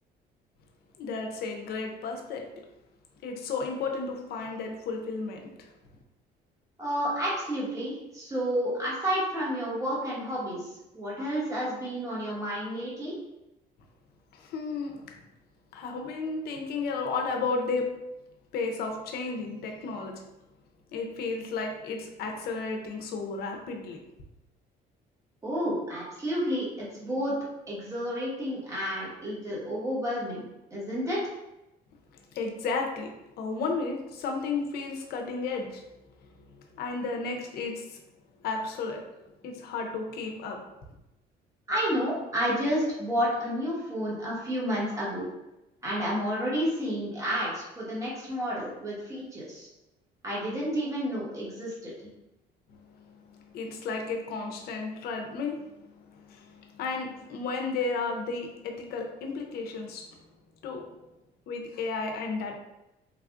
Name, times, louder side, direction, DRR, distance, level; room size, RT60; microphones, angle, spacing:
voice 1, 1.0-2.5 3.2-5.7 14.3-15.2 15.7-18.0 18.5-20.2 20.9-24.0 32.1-35.8 36.2-38.0 38.4-39.1 39.4-40.6 52.7-60.2 60.6-60.9 61.5-62.6, left 4 dB, 70° left, 2 dB, 0.6 m, -33 dB
voice 2, 6.8-13.2 25.4-27.3 27.7-31.2 41.7-45.3 45.8-49.7 50.2-51.9, equal, 20° right, -7 dB, 1.3 m, -30 dB
3.3 x 2.3 x 2.4 m, 0.93 s
cardioid pair, 110°, 17 cm